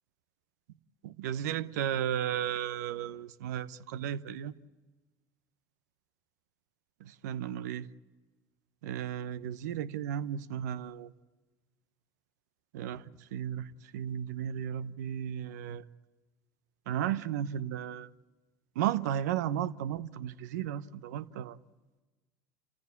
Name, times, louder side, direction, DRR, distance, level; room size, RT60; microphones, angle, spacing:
voice 1, 1.0-4.6 7.0-7.9 8.8-11.1 12.7-15.8 16.9-18.1 18.7-21.6, right 10 dB, 75° right, 0.8 m, -34 dB
29.0 x 15.0 x 8.3 m
hypercardioid pair, 75°, 9 cm